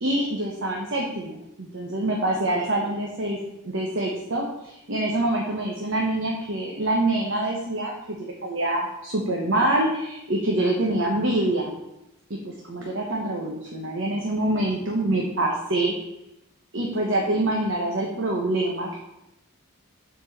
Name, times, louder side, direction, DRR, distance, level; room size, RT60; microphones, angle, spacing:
voice 1, 0.0-3.4 3.6-11.7 12.3-16.0 16.7-19.0, right 1 dB, 55° right, -1 dB, 1.1 m, -25 dB
7.2 x 4.5 x 6.7 m, 0.89 s
head